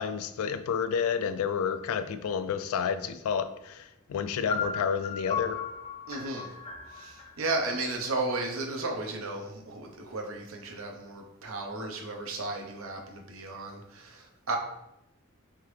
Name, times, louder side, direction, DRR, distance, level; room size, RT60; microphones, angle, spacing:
voice 1, 0.0-5.6, left 6 dB, 90° left, 11 dB, 0.3 m, -30 dB
sound 1, 4.5-8.3, left 6 dB, 25° left, 0.8 m, -36 dB
voice 2, 6.1-6.5 6.9-14.6, right 2 dB, 70° right, 1 dB, 0.7 m, -34 dB
3.7 x 3.5 x 3.1 m, 0.87 s
head